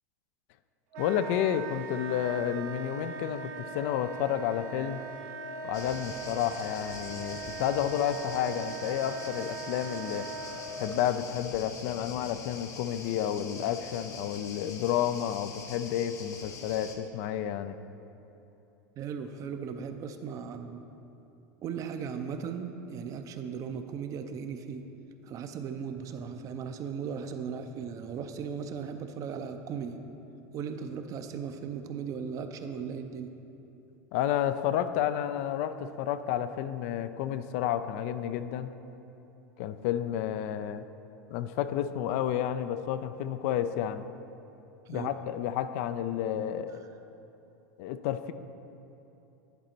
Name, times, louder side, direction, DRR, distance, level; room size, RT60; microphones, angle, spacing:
Wind instrument woodwind instrument, 0.9-11.0, right 5 dB, 65° right, 1.2 m, -40 dB
voice 1, 1.0-5.0 5.6-10.3 10.8-17.7 34.1-38.7 39.6-40.8 41.3-44.1 44.9-46.8 47.8-48.3, left 10 dB, 65° left, 11 dB, 0.3 m, -31 dB
sound 1, 5.7-16.9, left 4 dB, 40° left, 0.8 m, -45 dB
voice 2, 19.0-20.9 21.6-24.8 25.2-30.0 30.5-33.3 44.9-45.2 46.7-46.8, right 6 dB, 40° right, 7 dB, 0.5 m, -37 dB
10.5 x 4.1 x 4.4 m, 2.9 s
supercardioid pair, 115°, 9 cm